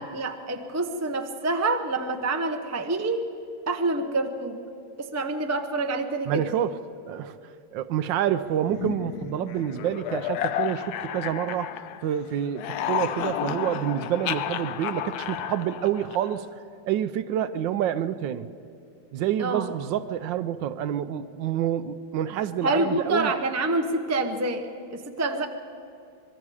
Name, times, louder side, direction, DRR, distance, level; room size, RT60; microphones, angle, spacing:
voice 1, 0.0-3.2 3.7-4.6 5.0-6.4 19.4-19.7 22.6-25.5, right 2 dB, 25° right, 5 dB, 0.3 m, -27 dB
voice 2, 6.3-6.8 7.1-7.4 7.7-11.8 12.0-16.5 16.8-18.5 19.1-23.3, right 10 dB, 75° right, 13 dB, 1.3 m, -28 dB
sound 1, 8.7-12.2 12.5-16.5, left 10 dB, 70° left, 1.0 m, -32 dB
24.5 x 22.5 x 4.9 m, 2.5 s
omnidirectional pair, 2.2 m